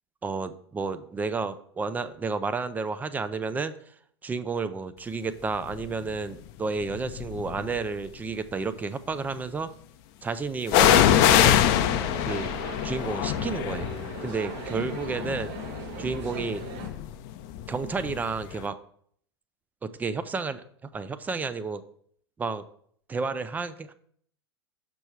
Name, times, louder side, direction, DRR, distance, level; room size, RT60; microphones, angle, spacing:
voice 1, 0.2-3.7 4.2-9.7 10.2-11.6 12.2-12.6 12.8-13.9 14.2-15.5 16.0-16.6 17.7-18.8 19.8-21.8 22.4-22.6 23.1-23.9, right 4 dB, 10° right, 12 dB, 0.4 m, -31 dB
sound 1, 5.7-6.1 6.8-7.8 10.7-18.3 18.6-18.7, left 11 dB, 45° left, 0.6 m, -24 dB
sound 2, 10.7-16.9, right 5 dB, 45° right, 1.3 m, -39 dB
6.1 x 5.4 x 4.5 m, 0.63 s
figure-of-eight pair, 100°, 14 cm